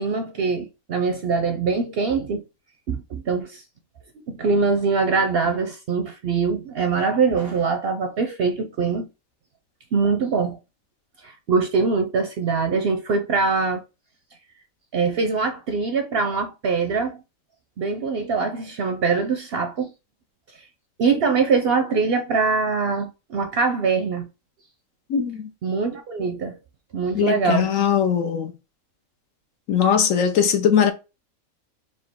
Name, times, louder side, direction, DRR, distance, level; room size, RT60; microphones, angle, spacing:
voice 1, 0.0-2.4 2.9-3.6 4.3-9.1 9.9-10.6 11.2-13.8 14.9-17.2 17.8-19.9 21.0-24.3 25.6-26.6 26.9-27.7, right 4 dB, 60° right, 0.6 m, -23 dB
voice 2, 25.1-25.5 27.1-28.5 29.7-30.9, left 8 dB, 70° left, 1.1 m, -20 dB
4.3 x 2.6 x 3.5 m
omnidirectional pair, 1.5 m